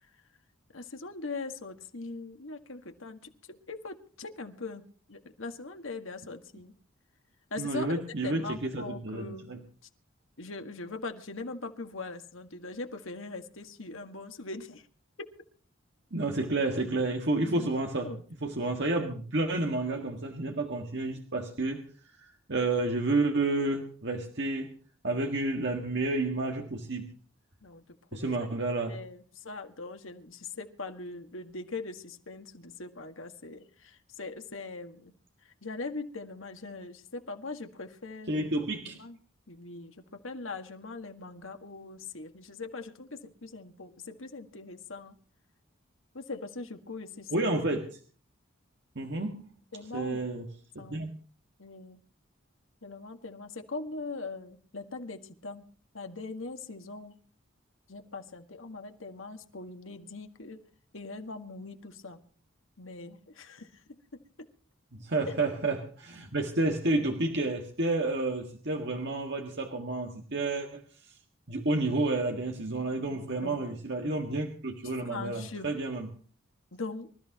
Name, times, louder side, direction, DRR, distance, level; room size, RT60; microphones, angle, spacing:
voice 1, 0.7-4.8 5.1-6.7 7.5-9.5 10.4-14.9 17.4-17.7 18.0-18.2 27.6-27.8 28.1-28.5 28.9-35.1 35.4-38.5 38.9-39.2 39.5-45.2 46.1-47.3 49.7-50.2 50.8-51.1 51.6-52.0 52.8-55.7 55.9-57.2 57.9-60.6 60.9-62.2 62.8-64.0 65.3-65.4 72.9-73.7 74.8-75.7 76.7-77.1, left 3 dB, 75° left, 6 dB, 1.8 m, -41 dB
voice 2, 7.6-9.6 16.1-18.2 18.4-21.8 22.2-24.7 25.0-27.1 28.1-29.0 38.3-39.0 47.3-48.0 49.0-49.5 49.9-50.5 50.8-51.1 64.9-71.2 71.5-76.1, right 2 dB, 55° right, 2 dB, 1.8 m, -30 dB
25.0 x 14.0 x 3.0 m, 0.41 s
head